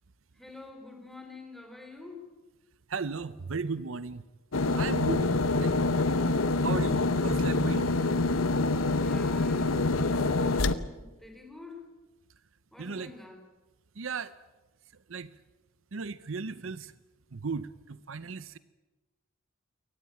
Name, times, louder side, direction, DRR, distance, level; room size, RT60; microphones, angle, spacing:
voice 1, 0.4-2.2 9.0-11.9 12.7-13.4, left 3 dB, ahead, 4 dB, 4.0 m, -47 dB
voice 2, 2.9-4.2 4.8-5.3 5.6-5.7 6.6-7.9 12.8-13.1 14.0-14.3 15.1-15.3 15.9-16.9 17.3-18.6, right 5 dB, 65° right, 15 dB, 0.7 m, -35 dB
sound 1, 4.5-10.7, left 3 dB, 75° left, 1.0 m, -26 dB
23.0 x 19.0 x 8.8 m, 1.2 s
head